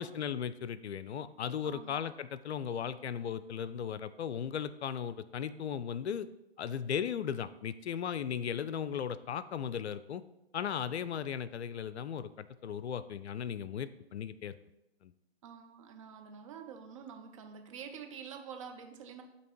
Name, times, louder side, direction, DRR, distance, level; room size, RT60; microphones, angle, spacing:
voice 1, 0.0-6.3 6.6-10.2 10.5-14.6 15.0-15.1, left 8 dB, 75° left, 14 dB, 0.5 m, -37 dB
voice 2, 1.6-2.0 15.4-19.2, right 7 dB, 30° right, 5 dB, 0.5 m, -47 dB
8.2 x 2.9 x 4.5 m, 0.91 s
figure-of-eight pair, 135°, 33 cm